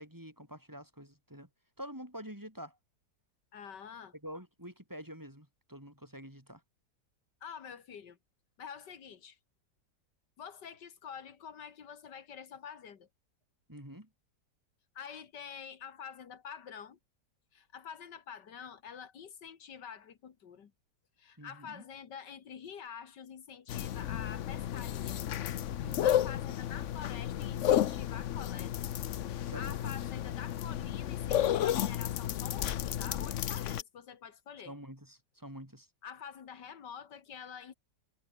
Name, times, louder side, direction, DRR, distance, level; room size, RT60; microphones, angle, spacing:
voice 1, 0.0-1.5 1.8-2.8 4.2-6.6 13.7-14.1 21.4-21.8 25.8-26.2 29.4-29.9 34.6-35.9, equal, 10° right, 5.1 m, -47 dB
voice 2, 3.5-4.1 7.4-8.2 8.6-9.4 10.4-13.1 15.0-17.0 17.5-20.7 21.2-25.2 25.8-28.9 29.5-34.8 36.0-37.7, left 7 dB, 85° left, 2.3 m, -47 dB
sound 1, 23.7-33.8, left 11 dB, 60° left, 0.9 m, -32 dB
omnidirectional pair, 1.8 m